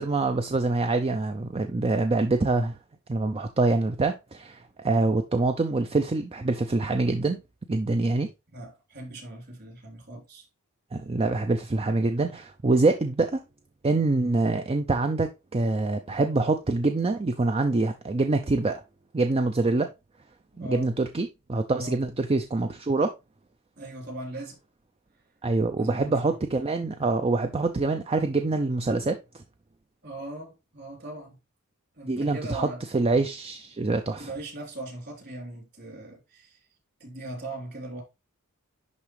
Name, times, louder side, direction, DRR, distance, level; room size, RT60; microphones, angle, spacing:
voice 1, 0.0-2.8 3.1-7.4 7.7-8.3 10.9-13.4 13.8-18.8 19.1-19.9 20.6-23.1 25.4-29.2 32.1-32.7 32.9-34.3, right 3 dB, 25° right, 0.5 m, -25 dB
voice 2, 8.5-10.5 20.5-21.0 21.7-22.0 23.8-24.6 25.7-26.3 30.0-31.4 31.9-32.8 34.2-36.6 37.0-38.0, right 1 dB, 50° right, 3.3 m, -39 dB
10.5 x 3.6 x 3.2 m
head